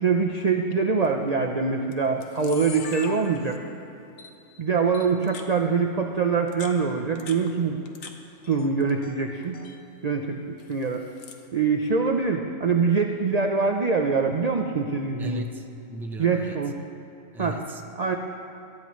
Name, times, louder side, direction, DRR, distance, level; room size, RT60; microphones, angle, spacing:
voice 1, 0.0-3.6 4.6-7.8 8.5-9.6 10.0-11.0 11.5-15.4 16.2-16.8 17.4-17.6 18.0-18.2, right 5 dB, 60° right, 3 dB, 0.4 m, -24 dB
Camera, 1.0-1.3 1.9-2.0 2.2-3.8 4.2-4.3 4.9-5.5 6.3-8.1 8.4-9.2 9.4-9.8 10.6-11.5, left 6 dB, 60° left, 1.3 m, -42 dB
voice 2, 15.2-16.7 17.3-18.2, right 1 dB, ahead, 3 dB, 0.5 m, -37 dB
18.5 x 14.0 x 3.1 m, 2.9 s
omnidirectional pair, 1.6 m